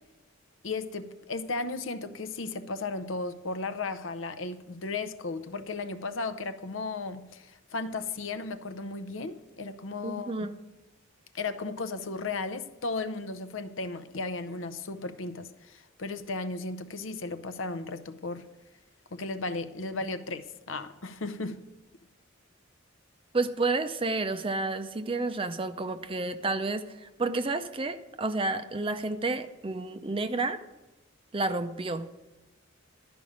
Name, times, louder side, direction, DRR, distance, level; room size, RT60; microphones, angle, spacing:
voice 1, 0.6-10.3 11.3-18.5 19.1-21.6, left 3 dB, 70° left, 0.7 m, -35 dB
voice 2, 10.0-10.6 23.3-30.6 31.3-32.1, right 3 dB, 25° right, 0.5 m, -30 dB
12.0 x 5.2 x 8.6 m
head